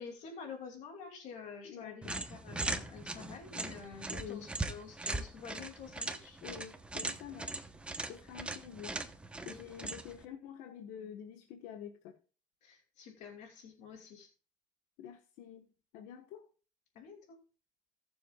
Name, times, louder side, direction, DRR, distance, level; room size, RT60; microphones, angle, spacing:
voice 1, 0.0-6.4 9.4-9.6 12.6-14.3 16.9-17.4, left 6 dB, 60° left, 2.6 m, -48 dB
voice 2, 1.6-2.2 4.1-4.5 6.4-7.7 8.1-9.0 9.4-12.1 15.0-15.7 15.9-16.5, left 8 dB, 85° left, 1.3 m, -47 dB
sound 1, 2.0-10.2, right 2 dB, 10° right, 0.9 m, -40 dB
18.5 x 7.1 x 2.4 m
cardioid pair, 150°, 13 cm